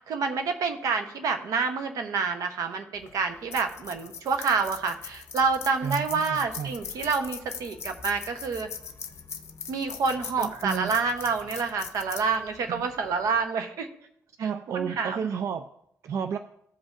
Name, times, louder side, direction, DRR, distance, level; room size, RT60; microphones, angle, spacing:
voice 1, 0.1-8.7 9.7-13.9 14.4-14.5 14.7-15.3, right 5 dB, 85° right, 7 dB, 0.8 m, -28 dB
sound 1, 3.0-13.4, left 6 dB, 50° left, 0.7 m, -41 dB
voice 2, 5.8-6.7 10.4-10.9 12.7-12.9 14.4-15.7 16.0-16.4, right 7 dB, 60° right, 8 dB, 0.3 m, -31 dB
15.0 x 5.2 x 2.5 m, 0.73 s
wide cardioid pair, 175°, 6 cm